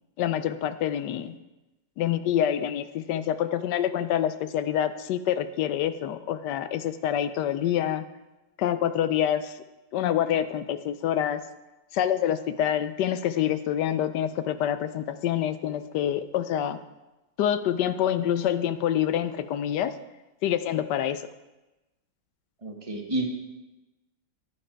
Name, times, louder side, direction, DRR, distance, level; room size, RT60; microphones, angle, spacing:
voice 1, 0.2-1.3 2.0-8.0 8.6-9.5 9.9-11.4 11.9-16.8 17.4-19.9 20.4-21.2, left 10 dB, 75° left, 12 dB, 1.2 m, -26 dB
voice 2, 22.6-23.3, right 2 dB, 20° right, 1 dB, 1.2 m, -30 dB
9.8 x 9.5 x 4.5 m, 1.0 s
omnidirectional pair, 1.9 m